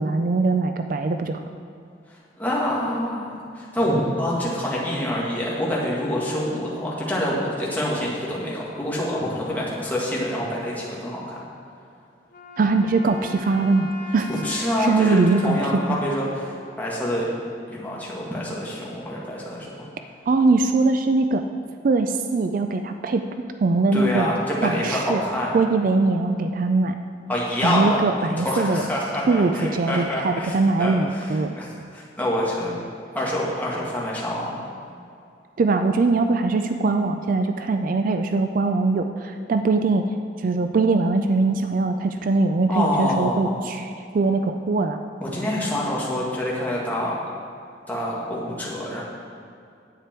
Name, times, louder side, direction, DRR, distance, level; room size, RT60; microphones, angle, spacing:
voice 1, 0.0-1.4 12.6-14.3 14.8-15.6 15.9-16.0 20.3-21.5 21.8-23.2 23.6-24.3 24.6-25.2 25.5-27.0 27.6-28.8 29.3-31.6 35.6-40.0 40.4-43.9 44.1-45.0, right 3 dB, 50° right, 7 dB, 0.4 m, -21 dB
voice 2, 2.1-11.4 14.3-15.2 15.4-17.3 17.7-19.9 23.9-25.6 27.3-28.0 28.4-31.3 31.6-32.7 33.1-34.6 42.7-43.6 45.2-47.1 47.9-49.0, left 1 dB, 10° left, -6 dB, 1.9 m, -26 dB
Wind instrument woodwind instrument, 12.3-17.5, left 2 dB, 55° left, 0.8 m, -40 dB
10.0 x 8.4 x 4.5 m, 2.4 s
head